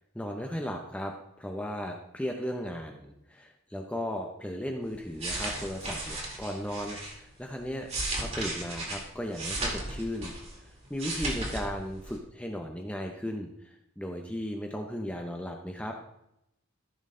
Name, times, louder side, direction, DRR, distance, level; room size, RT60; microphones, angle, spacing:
voice 1, 0.1-7.9 8.2-10.3 10.9-15.9, equal, 5° left, 2 dB, 0.7 m, -36 dB
sound 1, 5.0-7.1 7.7-10.6 10.9-11.6 11.9-12.1, right 2 dB, 30° right, 2.3 m, -35 dB
14.0 x 6.4 x 3.8 m, 0.81 s
head